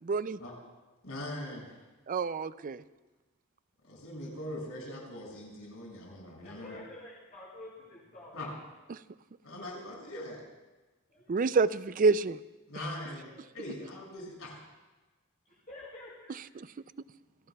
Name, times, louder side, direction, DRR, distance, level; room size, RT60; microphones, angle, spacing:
voice 1, 0.0-0.4 2.1-2.8 8.9-9.0 11.3-12.4, right 4 dB, 40° right, 16 dB, 0.4 m, -27 dB
voice 2, 1.0-1.8 3.8-6.8 8.3-8.5 9.4-10.4 12.7-14.6, left 1 dB, 75° left, -2 dB, 6.2 m, -41 dB
voice 3, 6.0-8.5 11.1-11.3 13.2-13.4 15.5-16.3, left 2 dB, 40° left, -7 dB, 5.0 m, -50 dB
28.5 x 17.5 x 2.3 m, 1.2 s
head